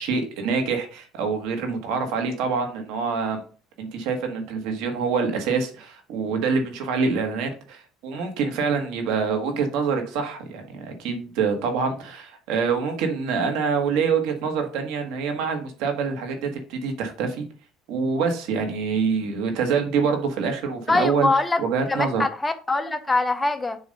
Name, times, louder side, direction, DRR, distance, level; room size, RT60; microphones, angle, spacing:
voice 1, 0.0-3.4 3.8-17.4 17.9-21.3 21.6-22.2, right 5 dB, 80° right, 1.5 m, -25 dB
voice 2, 20.9-21.6 21.9-23.8, left 3 dB, 15° left, 0.6 m, -23 dB
7.0 x 2.6 x 5.3 m
cardioid pair, 120°, 0 cm